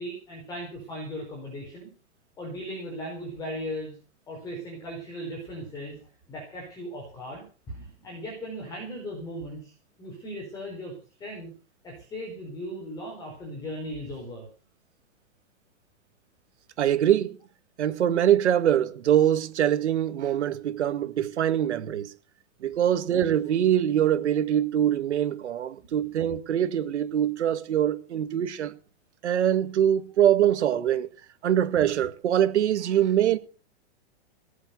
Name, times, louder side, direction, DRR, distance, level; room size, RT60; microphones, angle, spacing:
voice 1, 0.0-1.9 2.4-4.0 4.3-9.7 10.0-10.9 11.2-11.5 11.8-14.4, equal, 10° left, 4.8 m, -37 dB
voice 2, 16.8-17.4 17.8-22.1 22.6-28.8 29.2-31.1 31.4-33.4, right 10 dB, 85° right, 2.0 m, -23 dB
18.5 x 8.0 x 6.9 m
supercardioid pair, 180°, 33 cm